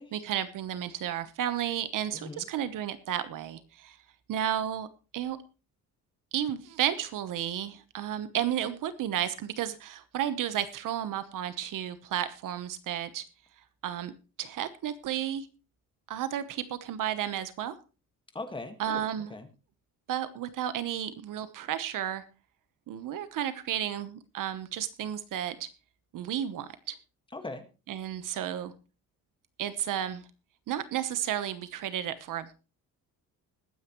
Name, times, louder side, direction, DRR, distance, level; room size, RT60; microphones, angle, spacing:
voice 1, 0.1-4.0 4.3-4.9 5.1-5.4 6.3-13.2 13.8-14.1 14.4-15.5 16.1-17.8 18.8-19.3 20.1-22.2 22.9-25.7 26.1-27.0 27.9-28.7 29.6-30.2 30.7-32.5, right 10 dB, 65° right, 12 dB, 1.1 m, -32 dB
voice 2, 2.1-2.5 18.3-19.5 27.3-27.6, left 2 dB, 15° left, 7 dB, 1.7 m, -40 dB
21.0 x 9.5 x 3.1 m, 0.32 s
cardioid pair, 165°, 35 cm